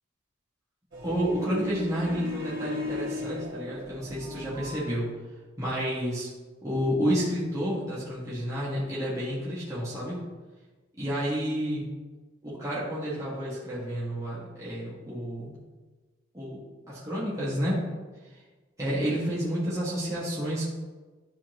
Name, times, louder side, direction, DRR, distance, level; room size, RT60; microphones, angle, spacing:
sound 1, 0.9-4.8, left 1 dB, 70° right, 1.7 m, -36 dB
voice 1, 1.0-5.2 5.6-6.3 6.6-10.2 11.0-11.8 12.4-15.6 16.3-16.6 16.9-17.8 18.8-20.6, equal, 15° right, -9 dB, 1.8 m, -30 dB
11.5 x 4.4 x 3.0 m, 1.3 s
head